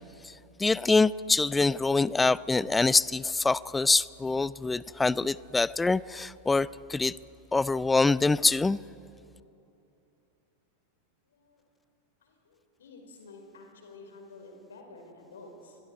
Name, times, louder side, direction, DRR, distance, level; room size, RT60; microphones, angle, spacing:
voice 1, 0.6-7.2 7.5-8.8, left 3 dB, 10° left, 0.4 m, -25 dB
voice 2, 11.2-11.6 12.2-15.8, left 3 dB, 65° left, 4.8 m, -50 dB
29.5 x 22.5 x 4.7 m
figure-of-eight pair, 90°, 0 cm